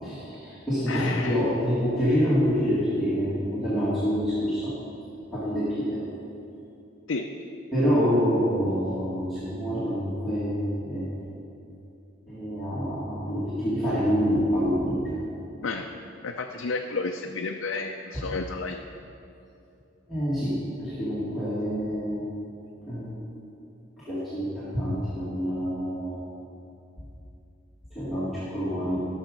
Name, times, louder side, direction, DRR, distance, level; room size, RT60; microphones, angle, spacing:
voice 1, 0.0-4.7 5.3-6.0 7.7-11.1 12.3-15.0 20.1-22.3 22.9-23.5 24.0-26.3 27.9-29.1, equal, ahead, -13 dB, 2.2 m, -27 dB
voice 2, 0.9-1.4 7.1-7.3 15.6-15.9 16.2-18.8, left 3 dB, 75° left, 2 dB, 0.5 m, -31 dB
14.0 x 6.4 x 5.1 m, 2.7 s
head